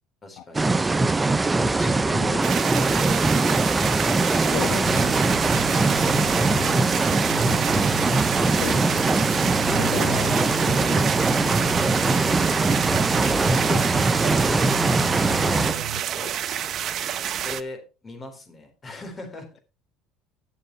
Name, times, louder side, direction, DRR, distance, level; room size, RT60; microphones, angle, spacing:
voice 1, 0.2-0.7 1.7-5.6 6.5-7.7 9.6-10.1 10.6-11.6 15.3-16.3 17.4-19.5, left 2 dB, 25° left, 6 dB, 4.2 m, -40 dB
sound 1, 0.5-15.7, right 3 dB, 15° right, 0.6 m, -22 dB
sound 2, 2.4-17.6, right 9 dB, 45° right, 0.9 m, -29 dB
voice 2, 4.5-4.9 8.6-9.1 9.7-10.5 13.7-14.1 15.4-15.7, left 11 dB, 55° left, 12 dB, 0.7 m, -32 dB
sound 3, 4.8-16.0, right 11 dB, 80° right, 0.9 m, -34 dB
11.5 x 7.9 x 4.4 m, 0.31 s
supercardioid pair, 115°, 0 cm